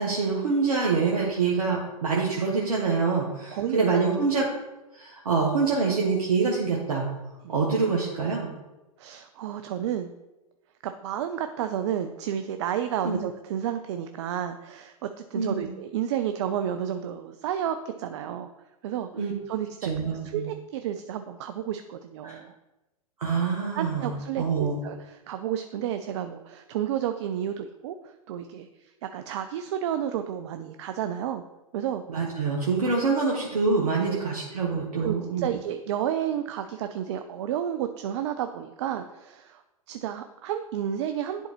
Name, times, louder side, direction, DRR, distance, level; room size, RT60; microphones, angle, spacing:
voice 1, 0.0-4.5 4.9-7.1 7.5-8.5 13.0-13.2 15.3-15.7 19.1-19.3 19.8-20.5 22.2-22.4 23.2-24.8 32.1-35.5, right 4 dB, 70° right, -3 dB, 1.2 m, -25 dB
voice 2, 3.5-3.8 7.4-7.6 9.0-10.1 10.8-18.5 18.8-19.9 20.2-22.6 23.7-31.4 31.7-32.0 34.0-34.2 35.0-39.6 39.9-41.5, right 10 dB, 50° right, 8 dB, 0.4 m, -31 dB
10.5 x 3.9 x 3.0 m, 1.0 s
figure-of-eight pair, 105°, 20 cm